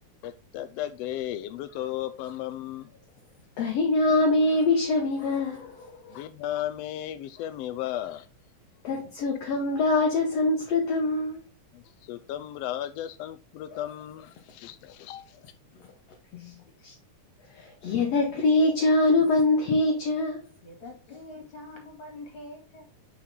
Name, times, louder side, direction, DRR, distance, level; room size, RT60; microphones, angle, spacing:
voice 1, 0.2-2.9 6.1-8.3 11.7-15.5, left 12 dB, 80° left, 1.4 m, -35 dB
voice 2, 3.6-6.1 8.8-11.4 13.7-13.8 16.3-16.5 16.8-16.9 17.6-20.4, left 2 dB, 60° left, 2.2 m, -24 dB
voice 3, 20.6-22.8, left 2 dB, 45° left, 3.3 m, -44 dB
6.4 x 5.8 x 3.8 m
omnidirectional pair, 3.5 m